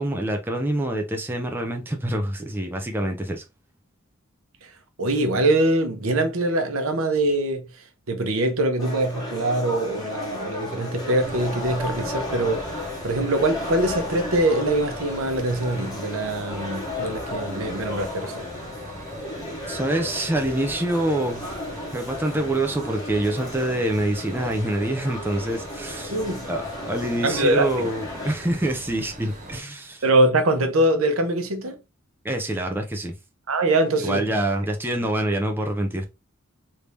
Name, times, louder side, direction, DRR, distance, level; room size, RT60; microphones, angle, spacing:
voice 1, 0.0-3.4 19.7-21.6 21.9-26.2 26.5-30.0 32.2-33.1 34.0-36.0, right 1 dB, 10° right, 0.5 m, -26 dB
voice 2, 5.0-7.7 8.1-18.5 26.1-26.5 27.2-27.9 30.0-31.8 33.5-34.3, right 1 dB, 70° right, 0.8 m, -23 dB
sound 1, 8.8-28.3, left 2 dB, 20° left, 1.1 m, -34 dB
sound 2, 11.2-29.6, right 1 dB, 35° right, 1.3 m, -41 dB
3.4 x 2.7 x 3.2 m
head